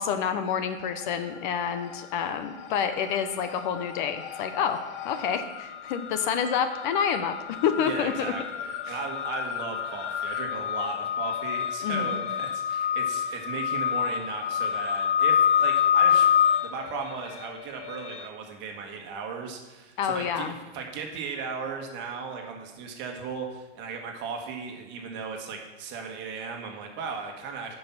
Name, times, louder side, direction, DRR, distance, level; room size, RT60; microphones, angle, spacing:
voice 1, 0.0-4.8 5.0-8.3 11.8-12.2 20.0-20.5, left 7 dB, 45° left, 9 dB, 0.7 m, -28 dB
sound 1, 0.7-1.4 1.7-18.3, left 8 dB, 25° left, 0.4 m, -28 dB
voice 2, 7.8-16.3 16.6-20.5 20.7-27.7, right 5 dB, 30° right, 2 dB, 1.6 m, -36 dB
10.0 x 5.5 x 5.8 m, 1.1 s
supercardioid pair, 145°, 35 cm